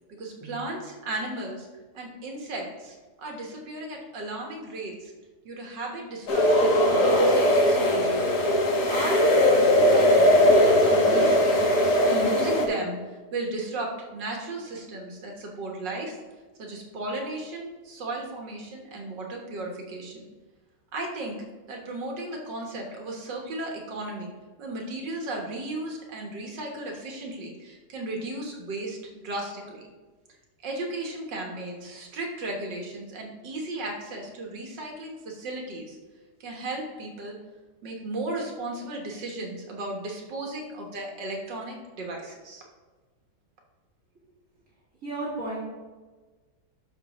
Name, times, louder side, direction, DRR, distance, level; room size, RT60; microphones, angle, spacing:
voice 1, 0.2-1.7 1.9-5.1 5.5-8.2 8.9-16.2 16.6-20.3 20.9-21.4 21.7-24.3 24.6-29.0 29.2-29.9 30.6-36.0 36.4-37.4 37.8-42.6, right 2 dB, 80° right, 0 dB, 2.1 m, -35 dB
sound 1, 6.3-12.7, left 1 dB, 65° left, 1.7 m, -20 dB
voice 2, 45.0-45.6, right 2 dB, 45° right, -7 dB, 2.7 m, -32 dB
12.0 x 5.6 x 3.1 m, 1.3 s
omnidirectional pair, 1.9 m